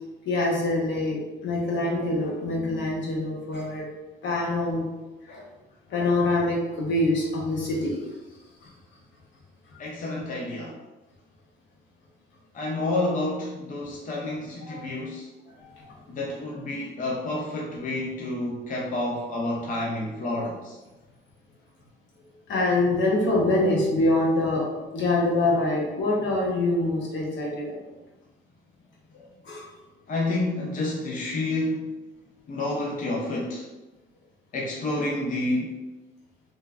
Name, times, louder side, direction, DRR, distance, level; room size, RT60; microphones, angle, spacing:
voice 1, 0.2-3.9 4.2-4.9 5.2-5.5 5.9-8.0 8.6-8.7 14.6-14.9 15.6-15.9 22.5-27.7 29.1-29.7, left 2 dB, 70° left, -3 dB, 0.9 m, -25 dB
voice 2, 9.8-10.8 12.5-15.3 16.1-20.8 30.1-32.0 32.5-33.7 34.5-35.7, left 2 dB, 40° left, -2 dB, 0.5 m, -29 dB
3.1 x 2.2 x 2.4 m, 1.1 s
cardioid pair, 90°, 20 cm